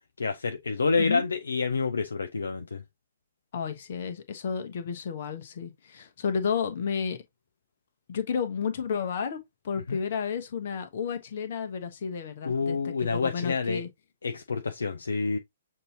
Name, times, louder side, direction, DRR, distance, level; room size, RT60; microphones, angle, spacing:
voice 1, 0.2-2.8 9.9-10.0 12.4-13.8 14.2-15.4, left 4 dB, 70° left, 0.4 m, -28 dB
voice 2, 3.5-7.2 8.1-9.4 9.6-13.9, left 6 dB, 50° left, 0.9 m, -32 dB
6.6 x 2.7 x 2.7 m
figure-of-eight pair, 120°, 0 cm